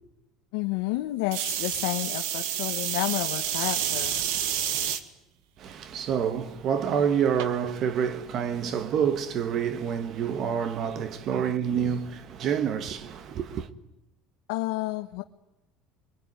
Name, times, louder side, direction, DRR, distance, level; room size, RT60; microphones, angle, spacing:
voice 1, 0.5-4.2 14.5-15.2, left 19 dB, 85° left, 1.2 m, -30 dB
sound 1, 1.3-5.0 5.7-6.1 7.4-7.5, right 10 dB, 70° right, 2.0 m, -29 dB
voice 2, 5.6-13.7, right 8 dB, 35° right, 1.4 m, -28 dB
26.5 x 22.5 x 9.6 m
cardioid pair, 180°, 0 cm